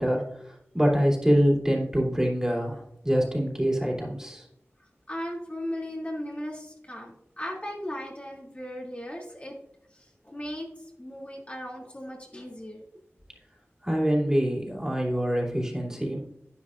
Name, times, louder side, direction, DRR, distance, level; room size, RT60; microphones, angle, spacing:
voice 1, 0.0-4.5 13.8-16.2, equal, 10° right, -3 dB, 3.0 m, -25 dB
voice 2, 5.1-9.5 9.9-12.8, equal, 30° left, -3 dB, 2.6 m, -37 dB
11.0 x 10.0 x 2.5 m, 0.77 s
wide cardioid pair, 65°, 5 cm